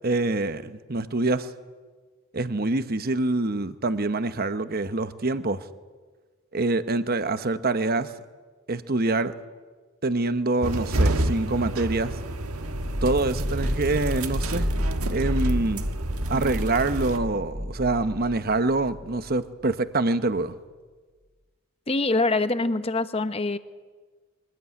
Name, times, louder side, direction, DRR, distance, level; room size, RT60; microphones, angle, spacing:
voice 1, 0.0-1.5 2.3-5.7 6.5-8.1 8.7-9.3 10.0-12.2 13.0-14.7 15.1-15.9 16.3-20.5, right 2 dB, 45° right, 0.9 m, -25 dB
sound 1, 10.6-17.2, right 1 dB, 75° right, 1.6 m, -29 dB
sound 2, 12.6-19.3, equal, 10° right, 1.0 m, -30 dB
voice 2, 21.9-23.6, left 2 dB, 25° left, 0.9 m, -24 dB
23.5 x 19.0 x 9.6 m
head